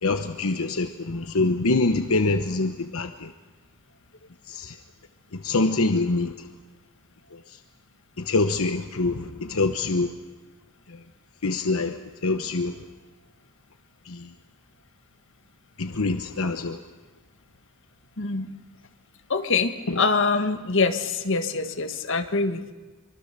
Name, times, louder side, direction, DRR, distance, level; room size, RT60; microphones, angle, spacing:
voice 1, 0.0-3.3 4.5-4.8 5.3-6.3 7.3-7.4 8.2-10.1 11.4-12.7 14.1-14.3 15.8-16.8 19.9-20.0, left 3 dB, 80° left, 7 dB, 1.0 m, -25 dB
voice 2, 18.2-18.5 19.3-22.7, left 4 dB, 60° left, 7 dB, 1.6 m, -24 dB
24.5 x 24.5 x 6.8 m, 1.3 s
head